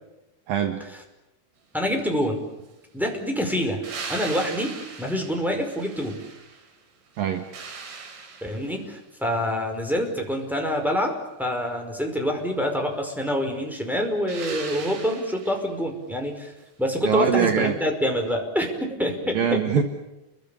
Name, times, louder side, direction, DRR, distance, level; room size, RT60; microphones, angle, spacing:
voice 1, 0.5-0.8 7.2-7.4 17.0-17.8 19.3-19.8, right 8 dB, 60° right, 7 dB, 2.7 m, -22 dB
voice 2, 1.7-2.4 2.9-6.2 8.4-16.5 16.8-19.6, equal, ahead, 1 dB, 4.5 m, -26 dB
sound 1, 3.8-6.7 7.1-8.9 14.3-15.7 18.3-18.4, right 5 dB, 90° right, 6.6 m, -39 dB
30.0 x 24.5 x 7.1 m, 0.99 s
omnidirectional pair, 5.6 m